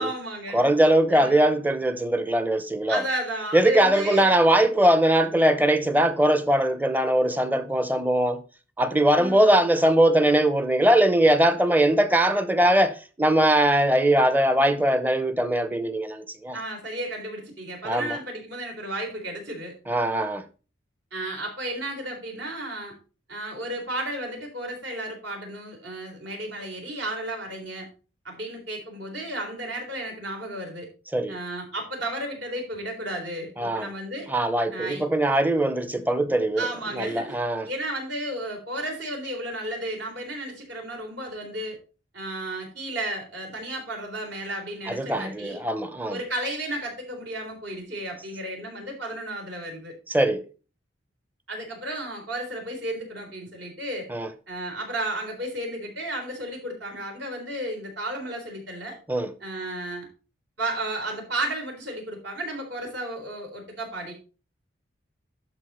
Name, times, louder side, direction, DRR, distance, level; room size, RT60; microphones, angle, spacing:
voice 1, 0.0-0.6 1.1-1.5 2.9-4.3 9.1-9.5 16.5-19.7 21.1-22.9 23.3-27.9 28.2-30.9 31.3-34.3 34.7-35.0 36.6-37.4 37.6-41.8 42.1-45.6 46.1-49.9 51.5-54.1 54.5-59.0 59.4-60.1 60.6-64.1, right 1 dB, 65° right, 3.9 m, -33 dB
voice 2, 0.5-3.0 3.5-8.4 8.8-16.6 17.8-18.2 19.9-20.4 31.1-31.4 33.6-33.9 34.3-36.7 36.9-37.7 44.9-46.2 50.1-50.4 54.1-54.3 59.1-59.3, right 1 dB, 10° right, 0.7 m, -21 dB
11.5 x 4.6 x 4.3 m
head